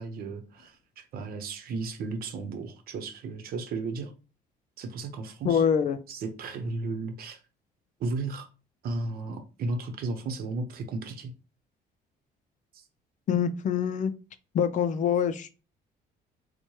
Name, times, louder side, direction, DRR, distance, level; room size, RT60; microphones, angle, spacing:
voice 1, 0.0-4.1 4.8-5.6 6.1-7.4 8.0-8.5 8.8-11.3, right 3 dB, 60° right, 0.8 m, -34 dB
voice 2, 5.4-6.0 13.3-14.1 14.5-15.6, left 7 dB, 50° left, 0.4 m, -25 dB
4.4 x 2.2 x 3.0 m
cardioid pair, 110°, 17 cm